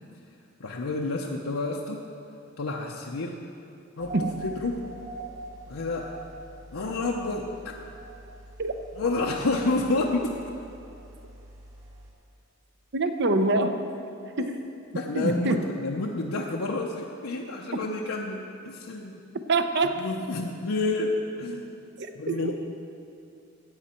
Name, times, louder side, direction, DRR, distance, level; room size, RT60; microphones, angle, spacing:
voice 1, 0.6-2.0 2.6-3.4 4.0-4.9 5.7-6.2 6.7-7.8 9.0-10.4 14.4-14.5 14.9-18.4 18.6-19.2 20.0-21.8 22.1-22.5, left 2 dB, 85° left, -1 dB, 0.7 m, -29 dB
sound 1, 4.0-12.1, right 2 dB, 70° right, 1.9 m, -43 dB
voice 2, 12.9-13.8 14.4-14.6 15.2-15.6 19.5-20.0 22.0-22.5, right 2 dB, 55° right, 8 dB, 0.7 m, -25 dB
13.5 x 9.2 x 4.4 m, 2.6 s
head